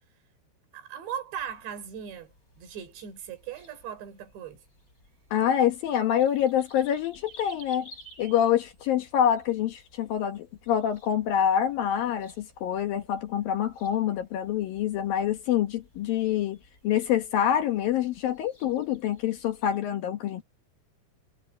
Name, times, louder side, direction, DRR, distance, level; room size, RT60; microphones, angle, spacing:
voice 1, 0.7-4.6, right 8 dB, 75° right, 6.1 m, -39 dB
sound 1, 1.3-19.8, left 1 dB, 20° left, 8.3 m, -56 dB
voice 2, 5.3-7.9 8.2-16.6 16.8-20.4, left 10 dB, 65° left, 2.6 m, -26 dB
omnidirectional pair, 5.1 m